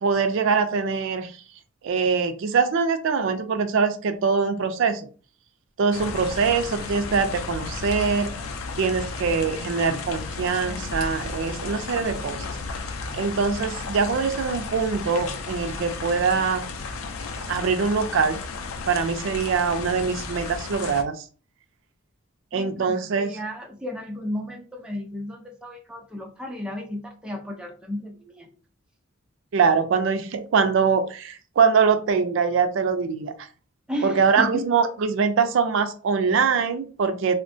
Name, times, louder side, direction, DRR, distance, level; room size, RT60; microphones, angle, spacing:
voice 1, 0.0-1.3 1.8-5.1 5.8-8.3 8.8-12.5 13.1-16.7 17.5-18.4 18.9-21.2 22.5-23.4 29.5-33.5 34.0-37.3, right 5 dB, 65° right, 8 dB, 0.4 m, -23 dB
sound 1, 5.9-21.0, left 4 dB, 85° left, 0.4 m, -33 dB
voice 2, 22.5-28.5 33.9-34.7, left 1 dB, 5° right, 1 dB, 0.4 m, -33 dB
3.5 x 2.1 x 2.5 m, 0.38 s
head